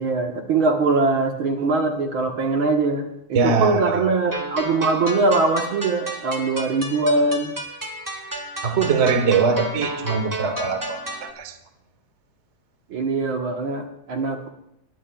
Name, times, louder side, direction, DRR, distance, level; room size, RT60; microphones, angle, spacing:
voice 1, 0.0-7.6 12.9-14.5, right 3 dB, 55° right, 2 dB, 1.7 m, -22 dB
voice 2, 3.3-4.2 8.6-11.5, right 5 dB, 75° right, 7 dB, 0.6 m, -22 dB
sound 1, 4.3-11.3, right 1 dB, 10° right, 1.2 m, -32 dB
22.0 x 20.5 x 2.4 m, 0.80 s
omnidirectional pair, 3.5 m